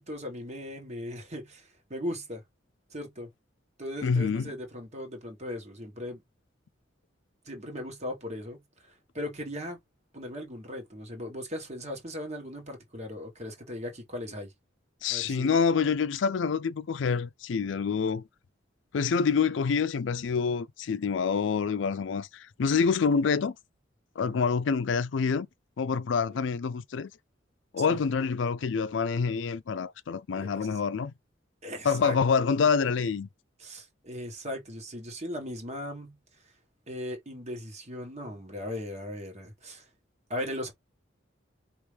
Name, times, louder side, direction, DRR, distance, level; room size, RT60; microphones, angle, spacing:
voice 1, 0.0-2.4 2.9-3.3 3.8-6.2 7.4-8.6 9.1-9.8 10.1-14.5 15.1-15.5 24.2-24.4 26.3-26.4 27.8-28.0 30.4-30.7 31.6-32.2 33.6-36.2 36.9-39.8 40.3-40.7, left 1 dB, 35° right, 1.6 m, -38 dB
voice 2, 4.0-4.5 15.0-18.2 18.9-23.5 24.2-25.5 25.8-27.1 27.7-31.1 31.8-33.3, left 5 dB, 75° left, 0.4 m, -27 dB
4.8 x 3.0 x 3.4 m
head